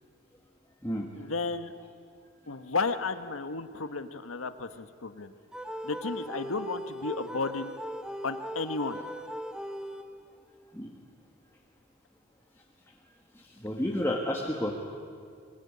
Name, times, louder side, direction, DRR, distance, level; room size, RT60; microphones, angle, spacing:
voice 1, 1.1-1.7 2.5-5.3 5.8-7.7 8.2-9.0, left 3 dB, 90° left, 10 dB, 1.3 m, -33 dB
sound 1, 5.5-10.4, equal, 5° right, 1.0 m, -39 dB
voice 2, 13.6-14.7, left 1 dB, 10° left, -1 dB, 1.8 m, -30 dB
23.5 x 22.0 x 9.8 m, 2.2 s
head